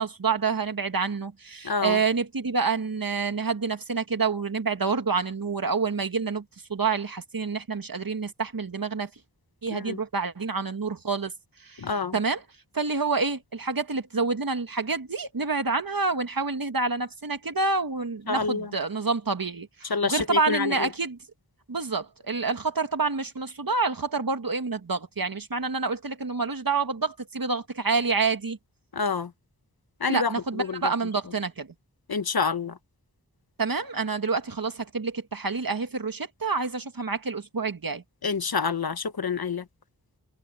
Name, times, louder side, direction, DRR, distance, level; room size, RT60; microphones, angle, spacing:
voice 1, 0.0-6.4 6.7-9.1 9.6-11.3 11.6-12.4 12.7-21.2 21.7-28.6 30.1-31.7 33.6-38.0, right 4 dB, 70° right, 1.8 m, -28 dB
voice 2, 1.6-2.0 9.7-10.0 11.8-12.1 18.3-18.7 19.9-20.9 28.9-29.3 30.0-30.3 30.6-30.8 32.1-32.8 38.2-39.6, left 5 dB, 85° left, 1.1 m, -27 dB
wide cardioid pair, 45°, 36 cm